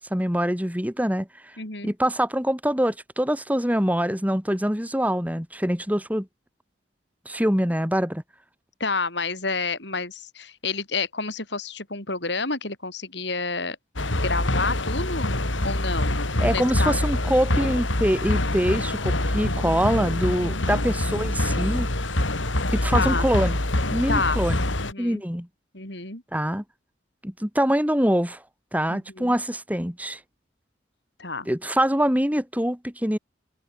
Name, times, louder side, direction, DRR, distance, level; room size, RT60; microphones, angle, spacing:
voice 1, 0.1-1.3 1.8-6.3 7.2-8.2 16.4-21.9 22.7-23.6 23.9-24.6 25.0-25.5 26.3-26.6 27.2-28.4 28.7-30.2 31.5-33.2, equal, 10° right, 4.9 m, -24 dB
voice 2, 1.6-1.9 8.8-13.8 14.2-15.3 15.6-16.2 16.5-17.0 20.4-20.8 22.9-23.3 24.1-24.4 24.8-25.2 25.7-26.2 28.9-29.4 31.2-31.5, left 3 dB, 60° left, 7.5 m, -29 dB
sound 1, 14.0-24.9, left 1 dB, 80° left, 3.6 m, -25 dB
head